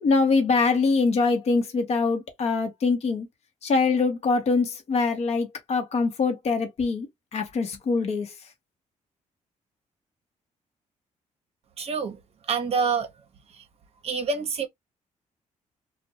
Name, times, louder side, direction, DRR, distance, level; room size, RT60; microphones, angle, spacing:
voice 1, 0.0-3.3 3.6-7.1 7.3-8.3, left 4 dB, 55° left, 0.8 m, -23 dB
voice 2, 11.8-12.2 12.5-13.1 14.0-14.7, right 5 dB, 50° right, 0.7 m, -26 dB
2.5 x 2.1 x 2.7 m
cardioid pair, 110°, 13 cm